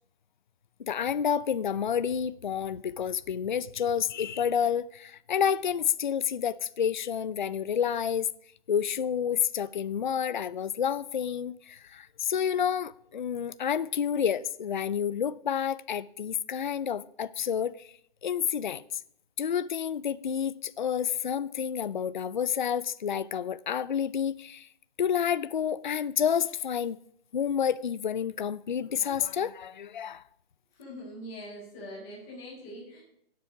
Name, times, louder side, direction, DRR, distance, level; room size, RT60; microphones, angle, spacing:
voice 1, 0.9-8.3 8.7-17.9 18.2-18.8 19.4-24.7 25.0-27.0 27.3-30.2, left 8 dB, 50° left, 0.5 m, -29 dB
voice 2, 30.7-33.0, equal, ahead, 0.5 m, -43 dB
16.0 x 7.5 x 5.9 m
hypercardioid pair, 160°, 30 cm